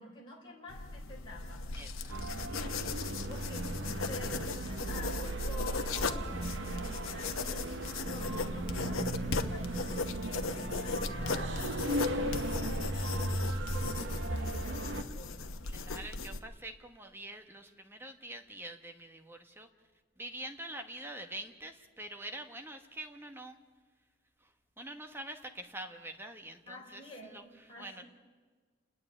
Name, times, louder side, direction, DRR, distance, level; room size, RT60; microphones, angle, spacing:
voice 1, 0.0-1.6 2.3-2.9 3.3-7.7 8.0-13.2 13.7-16.1 26.7-27.4 27.7-28.0, left 1 dB, 25° left, -4 dB, 3.8 m, -49 dB
sound 1, 0.7-16.4, left 4 dB, 85° left, 1.0 m, -38 dB
voice 2, 1.7-2.2 15.7-19.7 20.2-23.6 24.4-24.5 24.8-28.0, right 1 dB, 10° right, 6 dB, 1.2 m, -45 dB
sound 2, 2.1-15.0, right 1 dB, 65° right, 1.0 m, -36 dB
28.5 x 9.6 x 9.7 m, 1.5 s
head